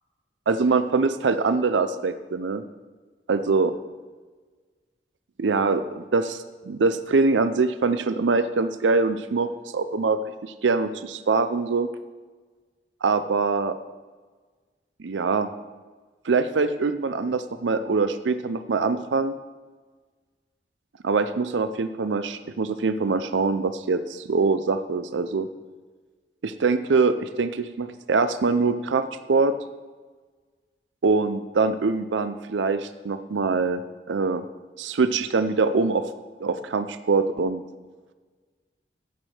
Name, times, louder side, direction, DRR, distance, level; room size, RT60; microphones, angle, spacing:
voice 1, 0.5-2.6 3.3-3.7 5.4-11.9 13.0-13.8 15.0-15.5 16.2-19.3 21.0-25.5 26.4-29.5 31.0-33.8 34.1-34.4 34.8-36.1 36.4-37.6, right 4 dB, 90° right, 11 dB, 0.5 m, -23 dB
15.5 x 6.4 x 4.4 m, 1.4 s
head